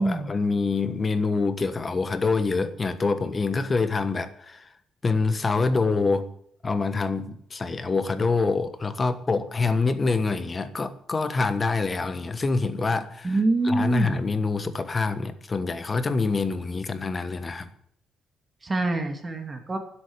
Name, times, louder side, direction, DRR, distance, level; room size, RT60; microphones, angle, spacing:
voice 1, 0.0-4.7 5.0-6.3 6.6-13.3 13.7-17.7, left 4 dB, 30° left, 1.3 m, -26 dB
voice 2, 13.2-14.2 18.6-19.8, right 2 dB, 25° right, 2.7 m, -25 dB
10.0 x 8.3 x 9.7 m
cardioid pair, 90°, 0 cm